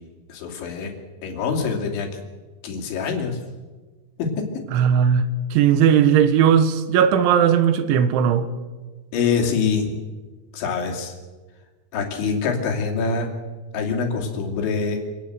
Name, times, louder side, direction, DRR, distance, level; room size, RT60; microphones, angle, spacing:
voice 1, 0.3-0.9 1.2-2.1 2.6-3.4 4.2-4.5 9.1-10.0 10.5-11.2 11.9-13.3 13.7-15.0, left 5 dB, 75° left, 5.1 m, -24 dB
voice 2, 4.7-8.5, right 8 dB, 85° right, 3.7 m, -17 dB
26.5 x 18.5 x 8.0 m
omnidirectional pair, 5.3 m